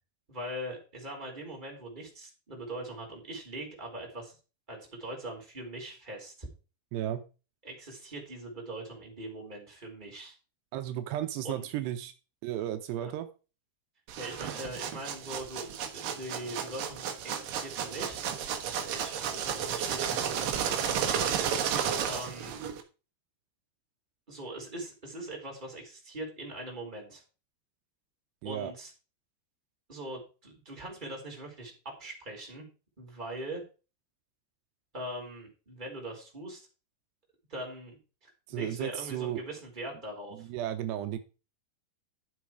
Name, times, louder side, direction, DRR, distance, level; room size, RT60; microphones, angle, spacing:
voice 1, 0.3-4.4 4.7-6.5 7.6-10.3 11.4-11.7 13.0-13.1 14.2-18.2 18.8-21.5 22.0-22.6 24.3-27.2 28.4-28.9 29.9-32.7 33.0-33.6 34.9-36.7 37.5-40.5, right 1 dB, 10° right, -1 dB, 4.2 m, -41 dB
voice 2, 6.9-7.2 10.7-12.1 12.4-13.3 28.4-28.7 38.5-39.4 40.4-41.2, right 12 dB, 85° right, 9 dB, 3.0 m, -34 dB
sound 1, 14.1-22.8, right 8 dB, 65° right, 2.7 m, -32 dB
12.0 x 7.5 x 4.8 m, 0.33 s
omnidirectional pair, 4.8 m